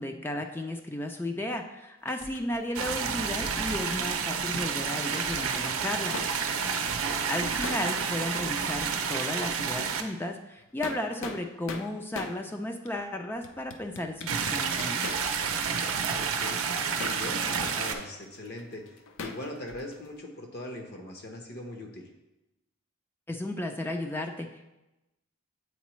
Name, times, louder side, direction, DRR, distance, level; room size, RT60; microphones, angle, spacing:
voice 1, 0.0-6.2 7.3-15.0 23.3-24.7, left 1 dB, 10° left, 4 dB, 0.3 m, -34 dB
sound 1, 2.1-4.9 5.1-6.4 6.7-8.3 8.5-8.6 9.0-9.6 9.9-10.0 10.6-12.4 12.9-13.0 13.4-15.5 15.8-20.1, left 3 dB, 70° left, 0.5 m, -42 dB
sound 2, 2.7-10.0 14.3-17.9, right 6 dB, 85° right, 0.6 m, -30 dB
voice 2, 6.6-7.3 16.1-16.7 17.0-18.9 19.2-22.1, left 1 dB, 50° left, 3 dB, 0.9 m, -41 dB
8.2 x 4.0 x 3.1 m, 0.98 s
head